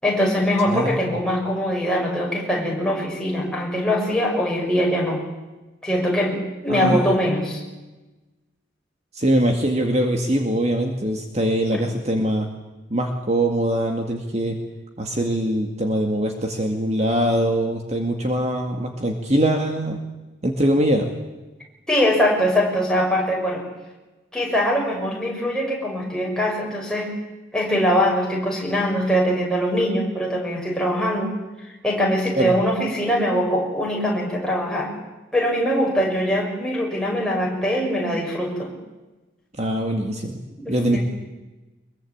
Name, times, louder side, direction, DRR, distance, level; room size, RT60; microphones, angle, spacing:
voice 1, 0.0-5.2 5.8-7.6 11.7-11.8 21.9-23.6 24.3-27.1 27.5-31.3 31.6-34.9 35.3-38.7 40.6-41.0, equal, 5° left, -2 dB, 6.5 m, -22 dB
voice 2, 0.7-1.0 6.7-7.1 9.1-12.5 12.9-14.6 15.0-20.0 20.4-21.1 32.4-32.5 39.6-40.4 40.7-41.0, right 1 dB, 35° right, 3 dB, 2.1 m, -22 dB
24.0 x 22.5 x 8.7 m, 1.1 s
head